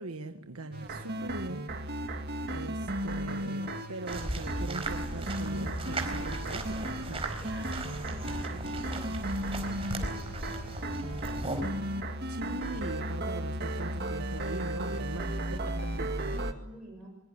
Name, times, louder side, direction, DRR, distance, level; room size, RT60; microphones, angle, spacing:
voice 1, 0.0-1.7 2.5-7.2 12.3-16.4, right 2 dB, 85° right, 6 dB, 1.4 m, -41 dB
sound 1, 0.7-16.5, right 1 dB, 45° right, 2.0 m, -35 dB
sound 2, 4.1-11.6, right 2 dB, 25° right, 4.3 m, -37 dB
voice 2, 7.1-11.4 15.3-17.1, right 1 dB, 5° right, -4 dB, 6.1 m, -50 dB
24.0 x 22.5 x 9.8 m, 0.93 s
head